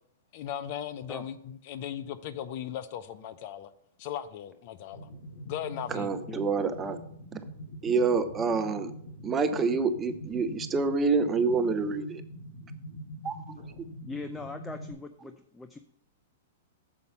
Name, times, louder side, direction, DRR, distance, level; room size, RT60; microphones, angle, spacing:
voice 1, 0.3-3.7 4.0-5.1 5.4-6.1, left 10 dB, 50° left, 0.7 m, -37 dB
sound 1, 4.9-14.9, equal, 85° left, 4.3 m, -44 dB
voice 2, 5.9-7.0 7.3-7.4 7.8-8.9 9.2-12.2 13.2-13.4, right 4 dB, 20° right, 0.8 m, -27 dB
voice 3, 14.0-15.8, left 3 dB, 10° left, 0.6 m, -40 dB
7.2 x 5.3 x 7.1 m
hypercardioid pair, 110°, 0 cm